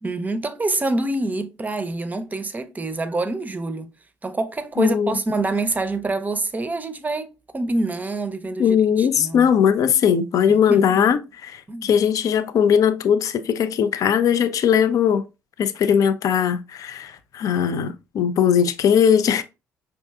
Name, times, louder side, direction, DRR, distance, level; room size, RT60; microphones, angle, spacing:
voice 1, 0.0-3.9 4.2-9.5 10.5-11.0 11.7-11.9, right 2 dB, 20° right, 0.6 m, -26 dB
voice 2, 4.8-5.1 8.6-11.2 11.5-15.3 15.6-19.4, left 8 dB, 50° left, 0.4 m, -19 dB
5.2 x 2.7 x 2.3 m
hypercardioid pair, 50°, 8 cm